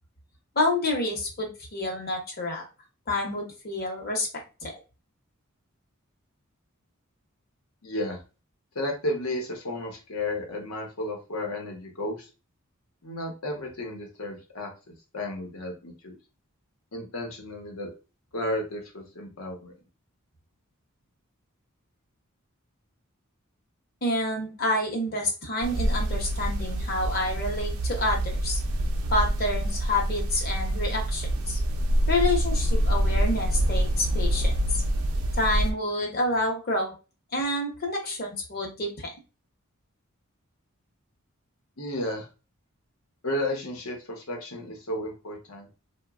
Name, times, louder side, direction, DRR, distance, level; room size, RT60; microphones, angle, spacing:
voice 1, 0.6-2.7 3.1-4.3 4.6-4.8 24.0-28.6 29.1-31.6 32.1-34.8 35.4-36.9 37.3-39.1, left 1 dB, 45° left, 1 dB, 0.9 m, -28 dB
voice 2, 7.8-8.2 8.7-12.3 13.0-14.7 15.1-16.2 16.9-17.9 18.3-19.7 41.8-42.3 43.2-45.7, left 1 dB, 85° left, 1 dB, 0.9 m, -33 dB
sound 1, 25.6-35.7, right 1 dB, 85° right, 0.5 m, -26 dB
2.9 x 2.2 x 2.4 m, 0.31 s
head